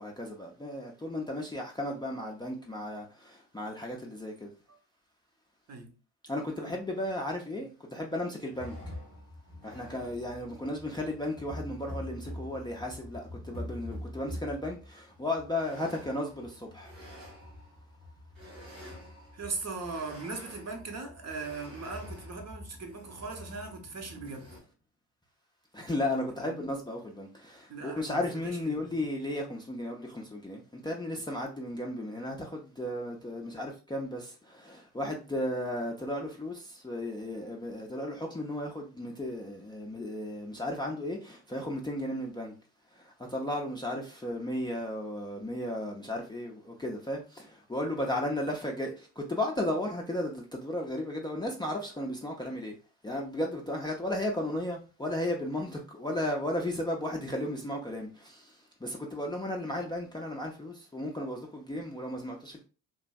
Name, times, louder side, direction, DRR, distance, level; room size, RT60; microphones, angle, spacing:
voice 1, 0.0-4.5 6.2-8.8 9.6-16.9 24.1-24.6 25.7-42.5 42.9-52.7 53.0-62.6, left 1 dB, 10° left, 0.5 m, -35 dB
sound 1, 8.5-24.6, left 1 dB, 85° right, 1.5 m, -45 dB
voice 2, 19.3-24.5 26.4-26.6 27.7-29.0, right 4 dB, 35° right, 0.8 m, -39 dB
3.1 x 2.4 x 2.3 m
hypercardioid pair, 50°, 46 cm